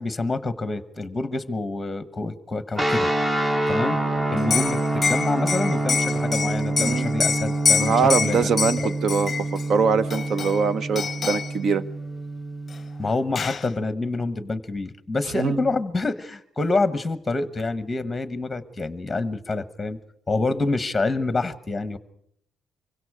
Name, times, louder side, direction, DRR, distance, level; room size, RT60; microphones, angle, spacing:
voice 1, 0.0-3.1 3.7-4.0 4.3-7.9 8.2-8.4 8.8-8.9 13.0-20.0 20.3-22.0, left 3 dB, 10° left, 1.1 m, -27 dB
sound 1, 2.8-13.1, right 2 dB, 10° right, 0.8 m, -26 dB
Liquid, 4.4-9.7 10.1-10.7 11.0-11.5 12.7-12.8 13.1-13.7, left 6 dB, 30° left, 0.8 m, -26 dB
voice 2, 6.8-7.1 7.8-9.3 9.7-11.8 15.3-15.6, right 5 dB, 50° right, 0.9 m, -22 dB
25.5 x 24.0 x 4.9 m
cardioid pair, 170°, 0 cm